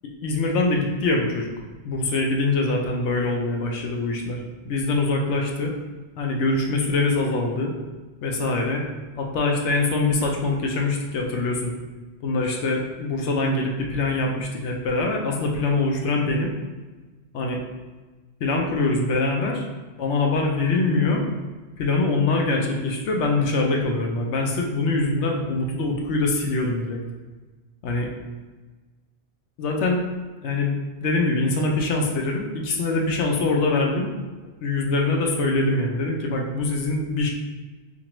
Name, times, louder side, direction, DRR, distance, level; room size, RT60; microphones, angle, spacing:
voice 1, 0.2-1.5 1.8-5.7 6.2-7.7 8.2-8.8 9.2-11.7 12.2-16.5 17.3-17.6 18.4-19.7 20.0-21.3 21.8-27.0 27.8-28.1 29.6-30.0 30.4-34.1 34.4-37.3, left 2 dB, 80° left, 1 dB, 0.9 m, -23 dB
4.3 x 2.5 x 3.0 m, 1.3 s
omnidirectional pair, 1.2 m